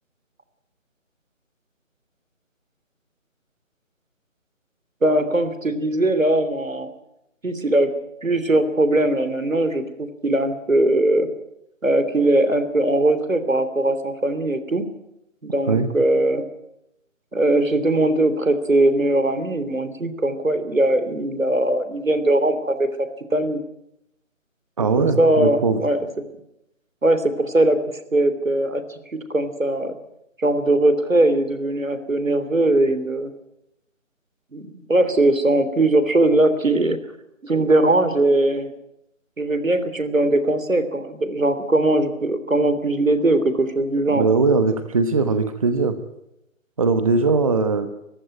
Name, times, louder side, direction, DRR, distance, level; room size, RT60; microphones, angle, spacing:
voice 1, 5.0-6.9 7.4-11.3 11.8-14.9 15.4-16.4 17.3-23.6 25.2-26.1 27.0-28.8 29.1-30.0 30.4-33.3 34.5-37.0 37.4-38.7 39.4-44.3, right 1 dB, 80° right, 11 dB, 3.3 m, -20 dB
voice 2, 24.8-25.8 44.1-46.0 46.8-47.9, right 4 dB, 25° right, 10 dB, 1.1 m, -20 dB
24.5 x 15.0 x 8.9 m, 0.83 s
figure-of-eight pair, 155°, 39 cm